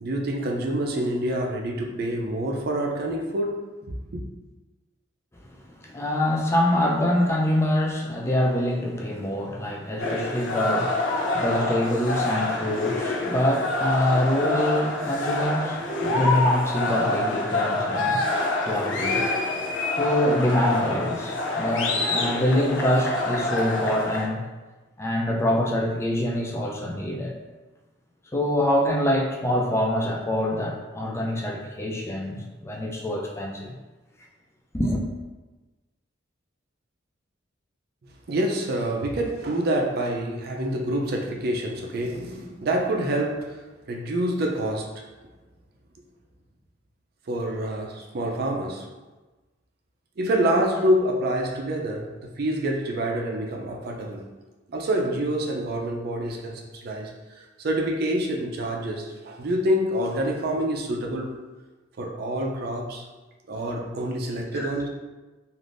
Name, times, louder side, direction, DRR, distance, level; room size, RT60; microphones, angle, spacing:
voice 1, 0.0-3.6 4.1-4.2 38.3-43.6 43.9-45.0 47.3-48.9 50.2-54.2 54.7-57.1 57.4-61.4 62.0-63.0 63.5-64.9, right 1 dB, 55° right, 1 dB, 0.5 m, -27 dB
voice 2, 5.8-18.2 18.7-19.2 20.0-24.4 25.0-27.3 28.3-33.7 34.7-35.0 64.5-64.7, left 1 dB, 15° left, -1 dB, 0.4 m, -25 dB
sound 1, 10.0-24.3, left 2 dB, 75° left, 0.5 m, -26 dB
3.4 x 2.5 x 2.5 m, 1.2 s
head